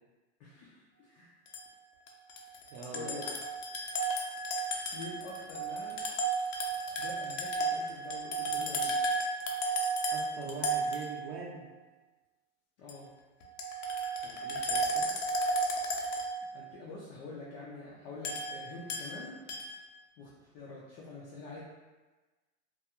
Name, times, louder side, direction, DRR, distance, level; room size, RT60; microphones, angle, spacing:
voice 1, 0.4-1.3 2.9-3.3 4.9-6.0 7.0-9.0 12.8-13.1 16.5-19.4 20.2-21.6, left 3 dB, 40° left, -5 dB, 0.4 m, -46 dB
sound 1, 1.5-1.6 2.1-11.5 12.9-13.0 13.4-16.7 18.2-19.1 19.5-19.8, right 2 dB, 85° left, 0.6 m, -33 dB
voice 2, 2.7-3.2 10.1-11.6 14.2-15.1, right 4 dB, 45° right, -2 dB, 0.5 m, -43 dB
2.3 x 2.3 x 2.8 m, 1.2 s
supercardioid pair, 145°, 36 cm